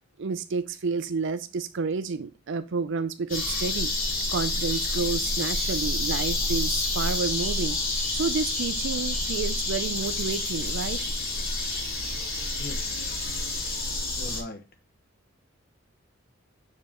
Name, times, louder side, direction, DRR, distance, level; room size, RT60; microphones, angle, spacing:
voice 1, 0.2-3.9 4.3-7.8 8.1-11.0, right 4 dB, 65° right, 0.5 m, -30 dB
sound 1, 3.3-14.4, left 2 dB, 80° left, 3.4 m, -28 dB
voice 2, 12.6-13.8 14.2-14.6, left 3 dB, 50° left, 1.4 m, -40 dB
7.4 x 6.6 x 3.0 m
head